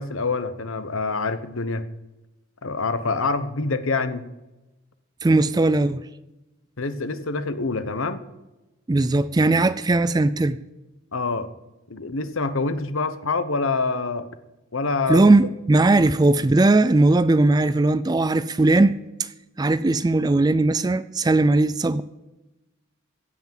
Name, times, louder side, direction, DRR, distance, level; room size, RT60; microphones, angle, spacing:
voice 1, 0.0-1.9 2.6-4.2 6.8-8.2 11.1-11.5 11.9-14.3 14.7-15.3 15.9-16.1, left 3 dB, 70° left, 1.0 m, -26 dB
voice 2, 5.2-6.0 8.9-10.6 15.1-19.3 19.6-22.0, right 2 dB, 20° right, 0.3 m, -19 dB
16.0 x 6.0 x 9.0 m
head